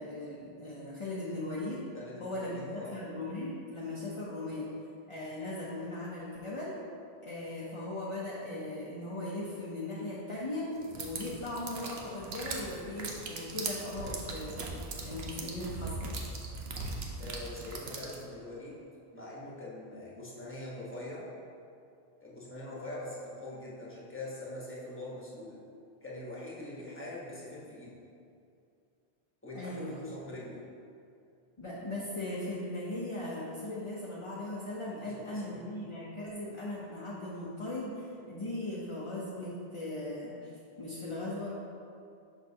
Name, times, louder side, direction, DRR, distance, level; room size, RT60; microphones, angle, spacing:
voice 1, 0.0-1.9 2.2-4.7 5.1-6.8 7.2-16.2 29.5-29.9 31.6-41.6, left 1 dB, 35° left, -6 dB, 0.7 m, -38 dB
voice 2, 1.9-3.0 17.2-18.8 19.1-21.3 22.2-25.6 26.0-28.0 29.4-30.6 35.0-35.6, left 1 dB, 10° left, -6 dB, 1.2 m, -43 dB
sound 1, 10.8-18.2, right 3 dB, 75° right, 0.9 m, -39 dB
6.5 x 5.7 x 2.8 m, 2.5 s
omnidirectional pair, 1.0 m